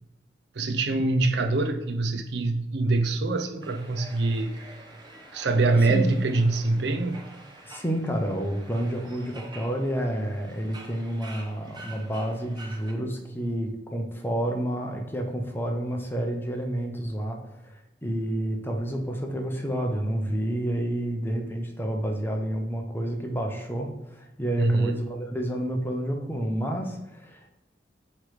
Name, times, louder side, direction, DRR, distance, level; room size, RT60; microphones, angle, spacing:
voice 1, 0.6-4.6 5.3-7.2 24.6-24.9, right 2 dB, 60° right, 0.5 m, -24 dB
sound 1, 3.6-12.9, right 2 dB, 25° right, 0.9 m, -47 dB
voice 2, 5.8-6.1 7.6-27.7, right 1 dB, 10° left, 0.8 m, -30 dB
8.1 x 3.2 x 5.0 m
head